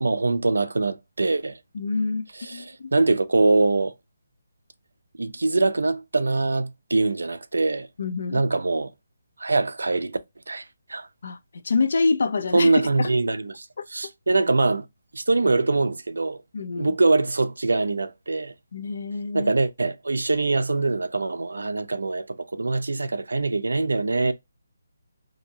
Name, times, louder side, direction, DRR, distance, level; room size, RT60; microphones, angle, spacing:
voice 1, 0.0-1.6 2.3-3.9 5.2-7.9 8.3-8.9 9.4-10.2 10.5-10.6 10.9-11.1 12.5-14.9 15.1-16.4 16.8-18.5 19.3-24.3, right 3 dB, 80° right, 0.4 m, -23 dB
voice 2, 1.7-2.2 2.5-2.9 8.0-8.4 11.2-11.4 11.6-12.7 13.0-13.1 16.5-16.9 18.7-19.5, left 4 dB, 60° left, 0.4 m, -26 dB
2.7 x 2.7 x 2.6 m
figure-of-eight pair, 155°, 0 cm